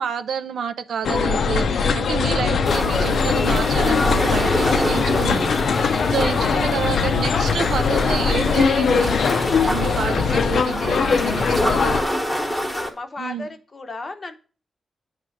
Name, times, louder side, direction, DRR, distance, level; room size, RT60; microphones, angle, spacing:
voice 1, 0.0-5.5 6.1-9.1 9.6-12.0 13.2-13.5, right 7 dB, 85° right, 9 dB, 0.6 m, -29 dB
sound 1, 1.0-12.0, left 5 dB, 65° left, 0.6 m, -21 dB
sound 2, 2.6-12.9, equal, 5° left, 1.2 m, -27 dB
voice 2, 6.3-6.7 7.0-7.6 9.8-11.4 11.6-12.1 12.6-14.3, left 3 dB, 30° left, 7 dB, 0.8 m, -34 dB
9.8 x 3.3 x 6.3 m, 0.39 s
wide cardioid pair, 175°, 0 cm